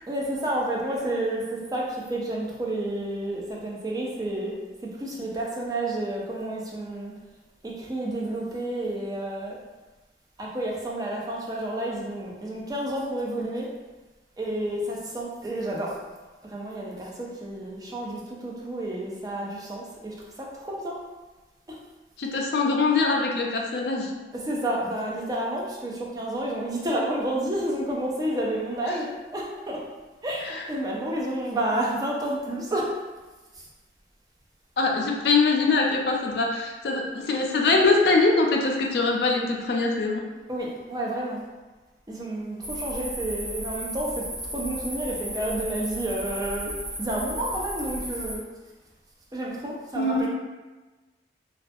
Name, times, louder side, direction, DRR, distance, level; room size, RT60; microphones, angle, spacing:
voice 1, 0.1-4.6 4.9-7.1 7.6-9.6 10.4-13.7 14.4-16.0 16.4-21.0 21.7-21.8 24.3-29.9 30.2-32.9 33.5-33.6 40.5-41.4 42.1-44.3 44.5-46.7 47.0-48.5 49.3-50.3, right 1 dB, 20° right, -3 dB, 0.4 m, -30 dB
voice 2, 22.2-24.1 34.8-40.2 50.0-50.3, left 3 dB, 65° left, 0 dB, 0.4 m, -23 dB
sound 1, 42.6-48.4, equal, 45° right, 1.2 m, -34 dB
2.3 x 2.2 x 2.5 m, 1.2 s
head